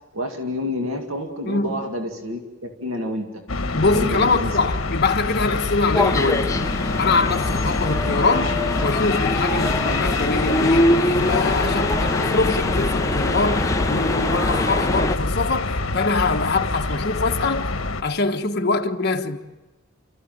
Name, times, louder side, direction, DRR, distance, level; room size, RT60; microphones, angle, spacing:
voice 1, 0.1-3.4 3.9-4.6, left 1 dB, 85° right, 2.3 m, -29 dB
voice 2, 1.4-1.9 3.7-6.6 7.0-8.6 8.8-17.7 18.0-19.4, left 3 dB, 55° left, 1.4 m, -23 dB
sound 1, 3.5-18.0, left 3 dB, 80° left, 1.4 m, -26 dB
sound 2, 5.9-15.2, left 1 dB, 15° left, 0.9 m, -23 dB
30.0 x 14.5 x 9.1 m
head